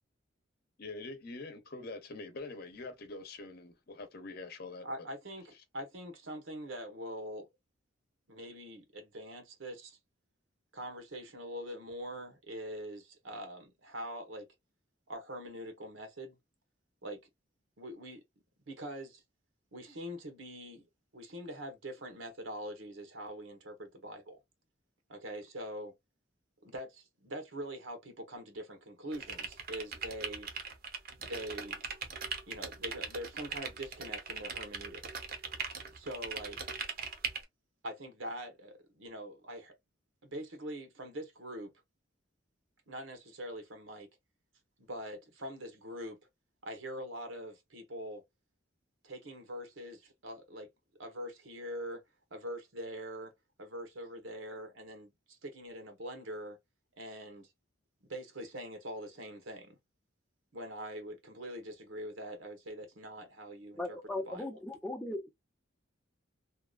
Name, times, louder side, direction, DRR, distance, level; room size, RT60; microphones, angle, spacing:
voice 1, 0.8-4.9, left 3 dB, 50° left, 0.7 m, -44 dB
voice 2, 4.8-7.5 8.3-10.0 10.7-14.5 15.1-16.4 17.0-17.2 17.8-18.2 18.7-19.2 19.7-20.9 21.1-24.4 25.1-25.9 26.6-30.5 31.2-31.8 32.5-35.0 35.9-36.6 37.8-39.7 40.2-41.7 42.9-44.1 44.8-46.2 46.6-48.2 49.0-50.7 51.0-52.0 52.3-53.3 53.6-56.6 57.0-57.5 58.1-59.8 60.5-64.0 64.2-64.6, equal, 85° right, 1.0 m, -43 dB
sound 1, 29.1-37.4, right 5 dB, 50° right, 0.7 m, -40 dB
voice 3, 63.8-65.3, left 2 dB, 5° left, 0.5 m, -38 dB
2.8 x 2.3 x 2.3 m
head